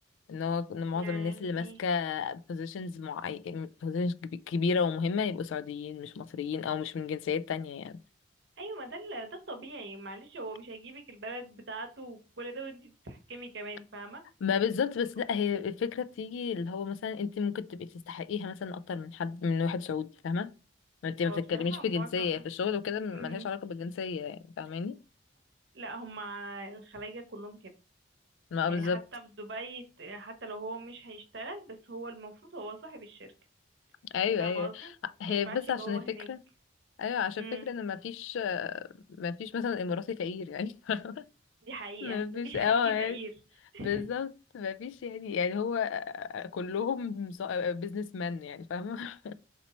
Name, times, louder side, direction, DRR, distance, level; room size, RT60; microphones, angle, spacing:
voice 1, 0.3-8.0 14.4-20.5 21.0-25.0 28.5-29.0 34.1-34.9 35.2-36.4 37.0-38.9 39.2-41.2 42.0-43.2 43.8-49.3, left 6 dB, 75° left, 0.3 m, -32 dB
voice 2, 0.9-1.8 8.6-14.2 21.2-22.4 23.1-23.5 25.7-27.7 28.7-33.3 34.4-34.9 35.3-36.3 37.4-37.7 41.6-43.3 43.7-44.0, right 2 dB, 60° right, 0.9 m, -42 dB
4.1 x 3.0 x 4.1 m
head